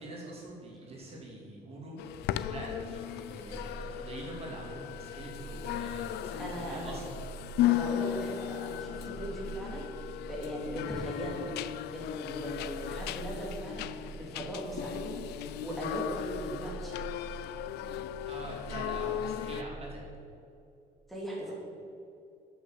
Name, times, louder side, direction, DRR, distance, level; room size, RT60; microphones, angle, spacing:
voice 1, 0.0-7.0 18.3-20.0, right 1 dB, 35° right, -3 dB, 2.5 m, -44 dB
sound 1, 2.0-19.6, left 12 dB, 75° left, 0.4 m, -36 dB
sound 2, 2.9-20.0, right 4 dB, 15° right, 1.4 m, -46 dB
voice 2, 6.4-6.9 7.6-11.4 11.9-17.0 21.1-21.5, equal, ahead, -5 dB, 2.4 m, -39 dB
7.7 x 6.5 x 7.4 m, 2.6 s
cardioid pair, 110°, 17 cm